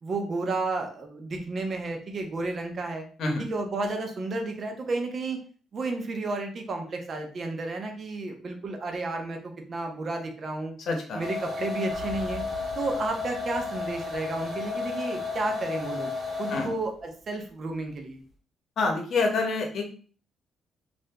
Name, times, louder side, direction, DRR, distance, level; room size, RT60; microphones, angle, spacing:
voice 1, 0.0-3.1 3.4-5.4 5.7-10.7 11.1-12.4 12.8-16.1 16.4-18.2, right 3 dB, 40° right, 4 dB, 0.6 m, -32 dB
voice 2, 10.8-11.2 16.5-16.7 18.8-19.8, left 3 dB, 65° left, 2 dB, 0.9 m, -27 dB
sound 1, 11.2-16.9, left 4 dB, 25° right, 1.4 m, -33 dB
sound 2, 11.9-16.1, right 5 dB, 85° right, 0.8 m, -46 dB
2.7 x 2.6 x 3.3 m, 0.42 s
cardioid pair, 130°, 0 cm